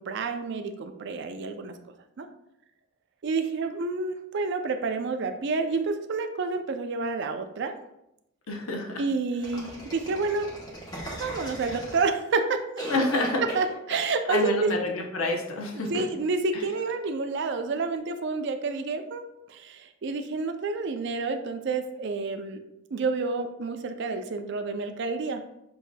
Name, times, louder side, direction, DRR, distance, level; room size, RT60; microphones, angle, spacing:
voice 1, 0.0-1.8 2.2-2.3 3.2-7.7 9.0-10.5 11.2-12.6 13.5-14.7 15.7-22.7 22.9-25.4, right 4 dB, 60° right, 7 dB, 0.4 m, -29 dB
voice 2, 8.5-9.0 12.9-13.4 14.3-16.1, left 2 dB, 90° left, 2 dB, 0.7 m, -27 dB
sound 1, 9.4-12.3 12.8-14.1 14.3-14.5, right 1 dB, 20° left, 1.0 m, -38 dB
6.9 x 2.7 x 2.2 m, 0.83 s
head